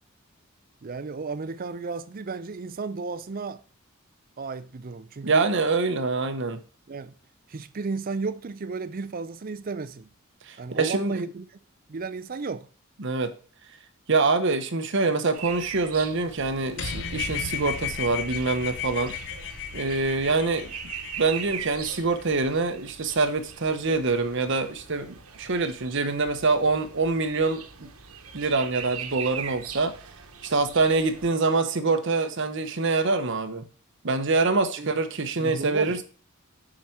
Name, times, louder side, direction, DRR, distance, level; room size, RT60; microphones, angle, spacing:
voice 1, 0.8-3.6 4.4-5.5 6.9-7.1 7.5-10.1 10.6-11.5 11.9-12.7 34.8-34.9 35.4-36.0, right 4 dB, 40° right, 0.5 m, -33 dB
voice 2, 5.2-6.6 10.4-11.2 13.0-13.3 14.1-19.1 19.7-20.7 21.2-27.9 28.3-29.9 30.4-33.6 34.0-36.0, right 3 dB, 55° right, 0.9 m, -25 dB
sound 1, 15.3-31.3, right 8 dB, 90° right, 1.1 m, -41 dB
sound 2, 16.8-22.4, left 7 dB, 55° left, 0.8 m, -35 dB
7.4 x 5.0 x 5.8 m
head